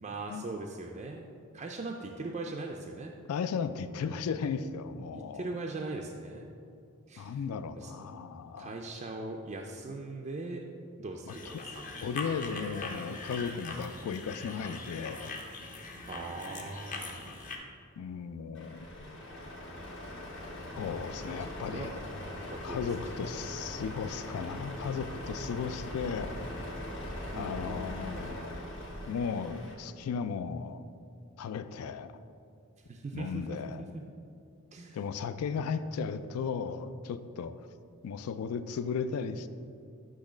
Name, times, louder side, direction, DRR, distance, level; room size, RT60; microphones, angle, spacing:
voice 1, 0.0-1.2 1.5-3.1 5.1-6.5 7.1-7.4 7.8-8.1 8.6-10.6 11.0-12.2 16.1-17.4 20.0-20.3 21.4-21.9 22.5-23.1 27.3-28.4 32.8-34.0 34.7-35.0, right 3 dB, 30° right, 1 dB, 0.3 m, -41 dB
voice 2, 3.3-5.6 7.2-8.8 11.3-11.6 12.0-15.4 18.0-18.9 20.8-21.9 22.6-26.3 27.3-28.6 29.1-30.8 31.4-32.1 33.1-33.8 34.9-37.5 38.0-39.5, left 6 dB, 85° left, 12 dB, 0.3 m, -35 dB
sound 1, 11.3-17.6, left 3 dB, 35° left, 0.6 m, -42 dB
Truck, 18.5-29.7, left 1 dB, 55° left, 1.0 m, -41 dB
8.4 x 3.2 x 5.0 m, 2.5 s
head